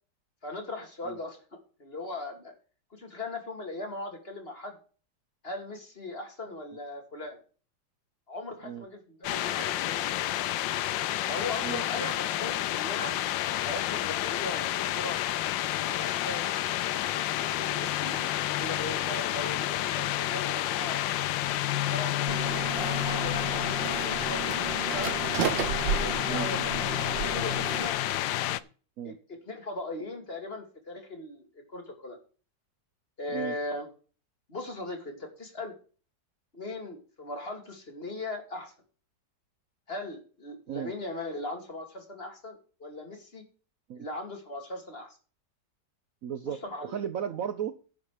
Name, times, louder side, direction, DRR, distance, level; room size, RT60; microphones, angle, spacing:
voice 1, 0.4-1.4 1.8-2.5 2.9-4.7 5.4-7.4 8.3-10.4 11.3-13.1 13.5-15.2 15.7-16.5 17.1-18.2 18.6-21.1 21.9-22.3 22.6-25.2 25.9-28.0 29.0-32.2 33.2-33.9 34.5-35.7 36.5-38.7 39.9-43.4 44.0-45.2 46.5-47.0, left 2 dB, 30° left, 2.7 m, -39 dB
sound 1, 9.2-28.6, left 13 dB, 90° left, 1.4 m, -30 dB
sound 2, 22.3-27.9, right 7 dB, 85° right, 1.7 m, -33 dB
voice 2, 46.2-47.9, right 8 dB, 60° right, 0.9 m, -35 dB
10.5 x 7.2 x 4.9 m
omnidirectional pair, 1.9 m